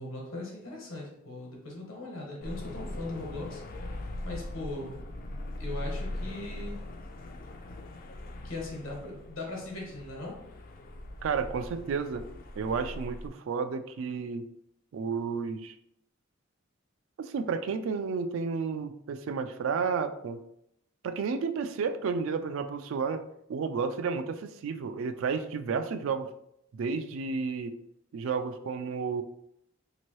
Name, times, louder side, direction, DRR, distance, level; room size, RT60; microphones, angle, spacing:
voice 1, 0.0-3.6 4.2-5.0 5.6-6.8 8.4-10.4, left 2 dB, 80° left, -2 dB, 1.2 m, -39 dB
sound 1, 2.4-13.3, left 1 dB, 45° left, 0.4 m, -40 dB
voice 2, 11.2-12.3 12.6-14.5 14.9-15.7 17.2-20.4 21.0-23.2 23.5-26.3 26.7-27.8 28.1-29.2, right 5 dB, 75° right, 9 dB, 0.3 m, -31 dB
2.9 x 2.6 x 3.1 m, 0.75 s
head